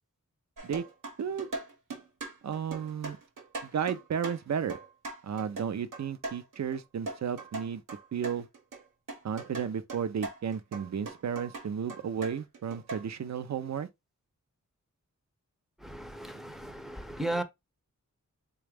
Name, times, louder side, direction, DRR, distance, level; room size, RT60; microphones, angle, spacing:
sound 1, 0.6-6.8 7.1-8.8 9.1-13.0, right 3 dB, 85° right, 1.1 m, -40 dB
voice 1, 1.2-1.5 2.4-3.2 3.6-4.8 5.2-7.8 8.1-8.5 9.2-13.9, right 7 dB, 60° right, 0.5 m, -33 dB
voice 2, 15.8-17.4, right 1 dB, ahead, 0.6 m, -35 dB
4.1 x 2.3 x 3.3 m
wide cardioid pair, 80°, 31 cm